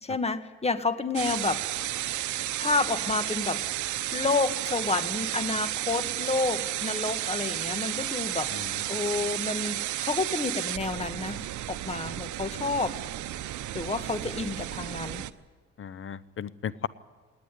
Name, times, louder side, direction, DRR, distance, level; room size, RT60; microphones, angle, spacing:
voice 1, 0.0-1.6 2.6-3.6 4.1-8.5 8.9-12.9 13.7-15.2, left 3 dB, 20° left, 10 dB, 1.5 m, -29 dB
sound 1, 1.1-15.3, right 14 dB, 75° right, 0.8 m, -32 dB
voice 2, 8.5-8.8 15.8-16.9, left 8 dB, 45° left, 18 dB, 0.8 m, -35 dB
19.0 x 18.0 x 9.9 m, 1.5 s
cardioid pair, 90°, 30 cm